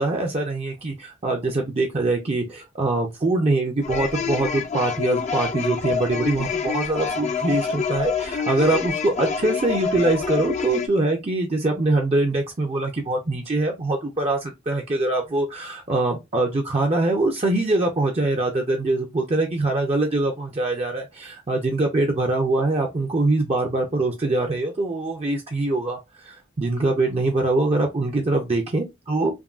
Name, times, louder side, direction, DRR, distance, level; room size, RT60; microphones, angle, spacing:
voice 1, 0.0-29.4, right 2 dB, 30° right, 0.5 m, -23 dB
sound 1, 3.8-10.9, left 6 dB, 35° left, 0.4 m, -27 dB
3.5 x 2.3 x 2.3 m
head